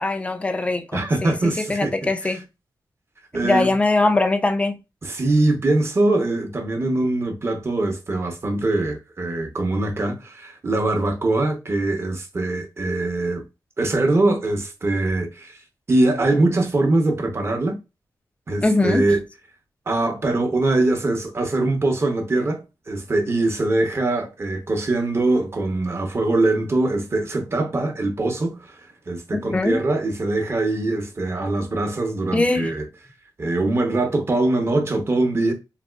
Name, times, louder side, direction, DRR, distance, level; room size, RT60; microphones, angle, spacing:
voice 1, 0.0-2.4 3.4-4.8 18.6-19.0 29.3-29.8 32.3-32.7, left 2 dB, 15° left, 0.4 m, -21 dB
voice 2, 0.9-1.9 2.2-2.4 3.3-3.7 5.0-13.4 13.8-15.6 15.9-17.8 18.5-19.2 19.9-28.7 29.1-32.8 33.4-35.5, right 2 dB, 35° right, 0.8 m, -22 dB
4.0 x 2.3 x 2.3 m
wide cardioid pair, 115°, 8 cm